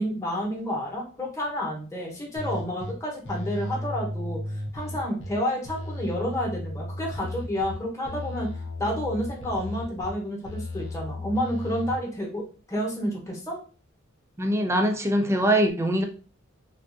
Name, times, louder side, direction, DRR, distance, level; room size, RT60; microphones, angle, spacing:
voice 1, 0.0-4.4 4.7-8.5 8.8-13.6, equal, 15° left, 1.0 m, -30 dB
sound 1, 2.4-2.9 3.2-5.3 5.6-7.7 8.0-10.1 10.4-11.9, left 1 dB, 65° left, 0.7 m, -34 dB
voice 2, 14.4-16.0, right 1 dB, 15° right, 0.4 m, -22 dB
3.4 x 2.4 x 2.5 m
head